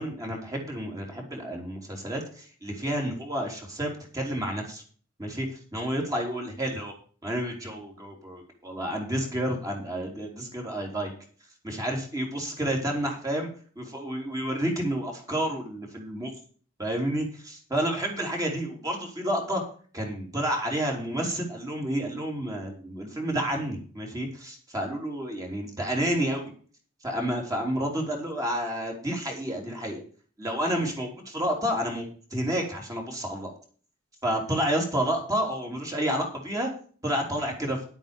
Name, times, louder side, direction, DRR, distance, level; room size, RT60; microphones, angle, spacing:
voice 1, 0.0-4.8 5.2-5.5 5.7-6.9 7.2-11.1 11.6-13.5 13.8-16.3 16.8-19.6 19.9-26.5 27.0-30.0 30.4-33.5 34.2-36.7 37.0-37.8, right 1 dB, 15° right, 1 dB, 3.6 m, -30 dB
11.0 x 9.2 x 5.2 m, 0.42 s
head